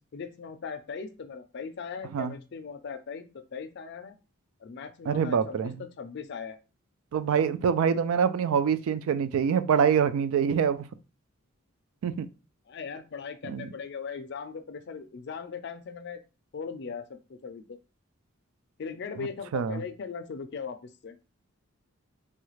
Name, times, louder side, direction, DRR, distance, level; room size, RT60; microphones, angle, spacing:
voice 1, 0.1-4.2 4.6-6.6 12.7-16.2 16.5-17.8 18.8-21.2, left 5 dB, 50° left, 0.4 m, -39 dB
voice 2, 5.1-5.7 7.1-10.9 12.0-12.3 13.5-13.7 19.2-19.3 19.5-19.8, right 7 dB, 75° right, 0.3 m, -25 dB
3.1 x 2.4 x 3.1 m
head